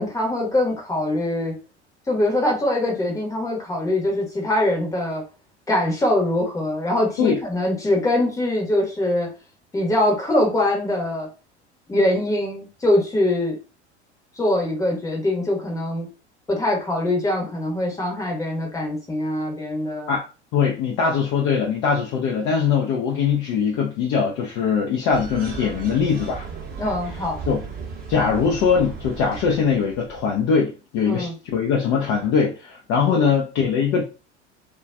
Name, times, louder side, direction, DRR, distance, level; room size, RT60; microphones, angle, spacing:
voice 1, 0.0-1.6 2.1-5.2 5.7-9.3 9.7-11.3 11.9-13.6 14.4-16.1 16.5-20.1 26.8-27.4 31.1-31.3 33.1-33.3, left 1 dB, 10° left, -1 dB, 0.8 m, -23 dB
voice 2, 20.5-26.5 27.5-27.6 28.1-34.0, left 6 dB, 35° left, 0 dB, 0.4 m, -21 dB
sound 1, 25.1-30.5, right 5 dB, 25° right, 0.8 m, -36 dB
2.3 x 2.2 x 2.4 m, 0.32 s
figure-of-eight pair, 75°, 35 cm